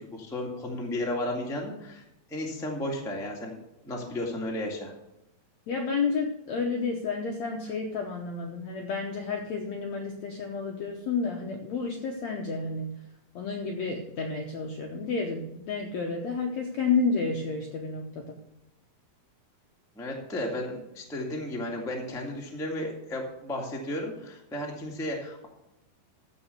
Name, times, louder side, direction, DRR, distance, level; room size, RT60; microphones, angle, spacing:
voice 1, 0.0-2.0 2.3-3.5 3.8-4.9 19.9-25.5, left 1 dB, 5° left, -1 dB, 0.3 m, -33 dB
voice 2, 5.7-12.9 13.3-18.4, left 4 dB, 75° left, 2 dB, 1.6 m, -30 dB
14.5 x 5.5 x 6.7 m, 0.89 s
omnidirectional pair, 4.5 m